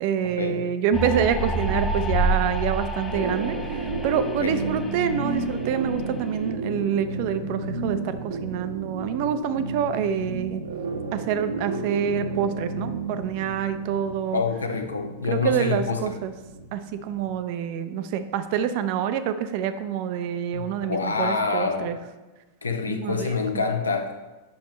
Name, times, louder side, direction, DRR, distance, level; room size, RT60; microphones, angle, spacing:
voice 1, 0.0-10.6 11.1-14.4 15.3-16.3 16.7-22.0 22.9-23.6, right 8 dB, 45° right, 10 dB, 0.5 m, -27 dB
sound 1, 0.9-6.4, right 1 dB, 10° left, 0.7 m, -29 dB
sound 2, 3.1-17.4, right 3 dB, 65° right, 0.9 m, -33 dB
voice 2, 14.3-16.1 20.5-22.0 22.6-24.2, left 4 dB, 75° left, 5 dB, 0.7 m, -26 dB
8.6 x 6.0 x 3.1 m, 1.1 s
figure-of-eight pair, 90°, 0 cm